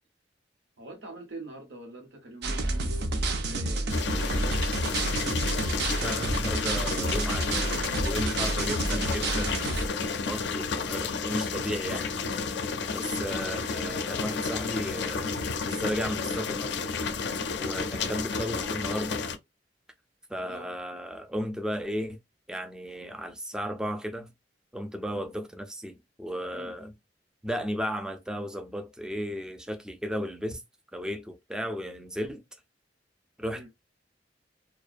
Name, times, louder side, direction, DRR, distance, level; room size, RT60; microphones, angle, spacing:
voice 1, 0.8-4.6 12.8-13.1 17.3-17.6 20.5-20.7 26.5-26.7 33.5-33.7, right 1 dB, 80° right, 0.9 m, -44 dB
sound 1, 2.4-9.9, right 2 dB, 60° right, 0.5 m, -29 dB
sound 2, 3.9-19.4, left 5 dB, 65° left, 0.4 m, -31 dB
voice 2, 6.0-7.7 8.0-9.6 9.8-12.2 12.9-16.8 17.6-19.2 20.3-22.2 22.5-24.3 24.7-26.9 27.4-30.6 30.9-32.4 33.4-33.7, equal, 5° right, 0.3 m, -34 dB
2.4 x 2.2 x 2.4 m
head